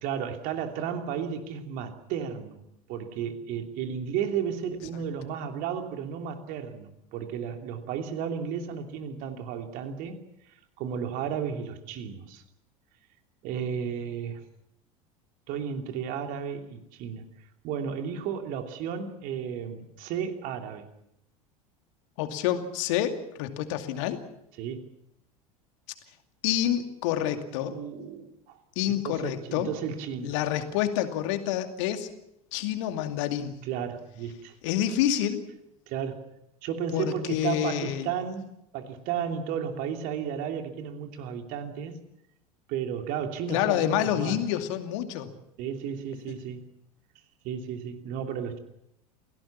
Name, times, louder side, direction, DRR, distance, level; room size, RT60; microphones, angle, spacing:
voice 1, 0.0-2.6 2.9-10.2 10.8-12.4 13.4-14.4 15.5-17.3 17.6-20.9 24.6-24.9 27.7-28.6 29.0-30.3 33.6-34.5 35.9-36.2 36.6-41.9 42.7-44.4 45.6-46.6 47.4-48.6, right 7 dB, 45° right, 5 dB, 2.9 m, -33 dB
voice 2, 22.2-24.2 26.4-27.7 28.8-29.7 30.2-32.1 32.5-33.5 34.6-35.4 36.9-38.1 43.5-45.3 46.3-46.4, left 11 dB, 55° left, 7 dB, 2.5 m, -28 dB
28.5 x 17.5 x 7.3 m, 0.80 s
figure-of-eight pair, 75°, 19 cm